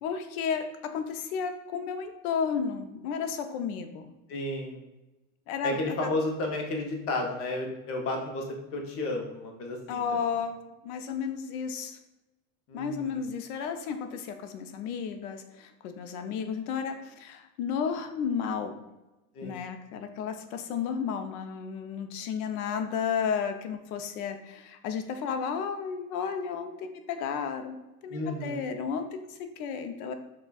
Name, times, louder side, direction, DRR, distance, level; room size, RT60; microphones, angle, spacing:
voice 1, 0.0-4.1 5.5-6.1 9.9-12.0 12.7-18.8 19.4-27.8 28.0-30.1, left 6 dB, 80° left, 7 dB, 0.7 m, -33 dB
voice 2, 4.3-4.8 5.6-8.4 8.7-10.0 12.7-13.2 19.3-19.5 28.1-28.7, left 2 dB, 35° left, 1 dB, 0.7 m, -32 dB
6.6 x 2.3 x 2.3 m, 1.0 s
cardioid pair, 160°, 43 cm